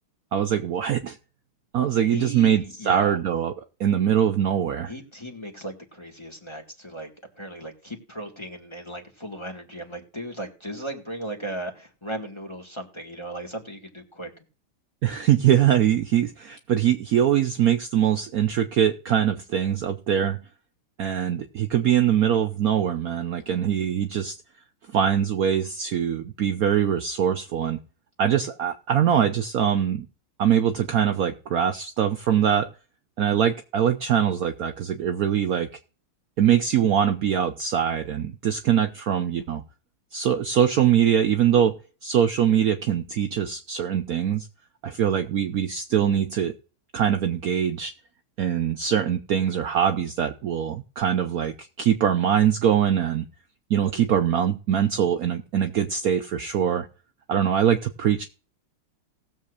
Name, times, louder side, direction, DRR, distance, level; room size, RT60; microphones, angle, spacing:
voice 1, 0.3-1.2 1.7-3.5 3.8-4.9 15.0-20.4 21.0-24.3 24.9-27.8 28.2-30.1 30.4-32.7 33.2-35.7 36.4-39.6 40.1-41.7 42.0-44.5 44.8-46.5 46.9-47.9 48.4-53.2 53.7-56.9 57.3-58.2, right 9 dB, 75° right, 7 dB, 0.8 m, -23 dB
voice 2, 2.1-3.2 4.9-7.1 7.4-14.3, right 1 dB, 15° left, 2 dB, 1.7 m, -36 dB
19.0 x 7.5 x 2.5 m, 0.37 s
omnidirectional pair, 2.4 m